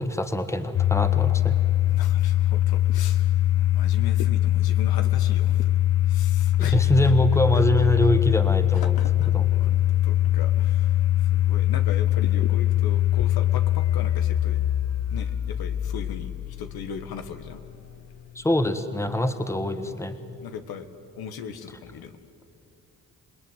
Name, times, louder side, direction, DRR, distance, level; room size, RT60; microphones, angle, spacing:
voice 1, 0.0-1.6 6.6-8.9 9.3-9.5 18.3-20.2, equal, 10° left, 9 dB, 1.5 m, -24 dB
Domestic sounds home sounds, 0.7-17.7, left 13 dB, 45° left, 0.5 m, -22 dB
voice 2, 1.9-7.1 7.5-8.1 8.7-14.6 15.1-17.6 19.8-20.0 20.4-20.9 21.2-22.2, left 7 dB, 80° left, 8 dB, 1.7 m, -39 dB
28.0 x 19.5 x 9.2 m, 2.6 s
cardioid pair, 85°, 36 cm